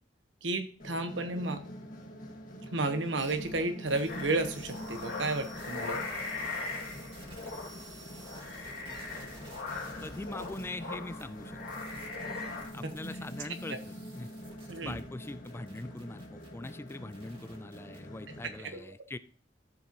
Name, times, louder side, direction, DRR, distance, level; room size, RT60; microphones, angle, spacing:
voice 1, 0.4-1.6 2.7-6.0 13.7-13.8 14.7-15.0 18.6-18.9, right 2 dB, 90° right, 7 dB, 1.2 m, -32 dB
sound 1, 0.8-18.6, equal, 45° left, 1.8 m, -46 dB
sound 2, 3.2-3.6 3.9-10.6 11.2-11.3 11.6-18.0, right 2 dB, 30° right, 2.2 m, -53 dB
sound 3, 4.1-12.7, left 3 dB, 90° left, 2.4 m, -40 dB
voice 2, 10.0-11.6 12.7-14.3 14.8-19.2, left 2 dB, 15° left, 14 dB, 0.4 m, -42 dB
13.5 x 7.2 x 3.0 m, 0.41 s
head